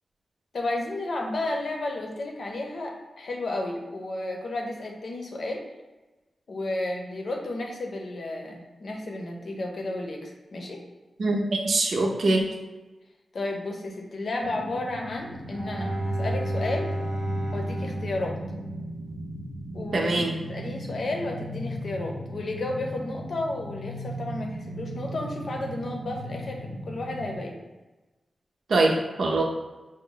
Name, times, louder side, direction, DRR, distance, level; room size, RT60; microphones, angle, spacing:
voice 1, 0.5-5.6 6.5-10.8 13.3-16.9 17.5-18.4 19.7-27.6, left 2 dB, 60° left, 1 dB, 0.7 m, -32 dB
voice 2, 11.2-12.4 19.9-20.3 28.7-29.4, right 2 dB, 70° right, 1 dB, 0.6 m, -23 dB
sound 1, 14.4-27.4, equal, 30° right, 0.8 m, -37 dB
Bowed string instrument, 15.3-19.4, right 1 dB, ahead, 0.7 m, -31 dB
5.0 x 2.2 x 3.8 m, 1.1 s
wide cardioid pair, 130°, 0 cm